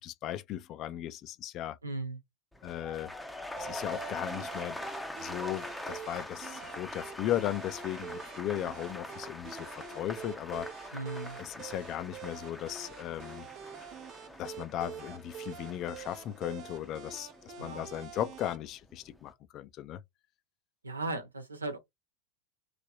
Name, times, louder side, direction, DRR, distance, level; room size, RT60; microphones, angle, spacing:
voice 1, 0.0-1.8 2.6-3.1 3.6-4.8 5.2-9.7 9.9-10.9 11.4-13.5 14.4-20.0, left 12 dB, 35° left, 0.5 m, -37 dB
voice 2, 1.8-2.2 10.9-11.4 17.6-17.9 20.8-21.8, right 2 dB, 80° right, 1.1 m, -37 dB
sound 1, 2.5-18.6 18.9-19.3, left 1 dB, 5° left, 0.7 m, -44 dB
sound 2, 3.6-18.6, right 8 dB, 40° right, 0.8 m, -47 dB
3.3 x 2.9 x 2.6 m
figure-of-eight pair, 85°, 0 cm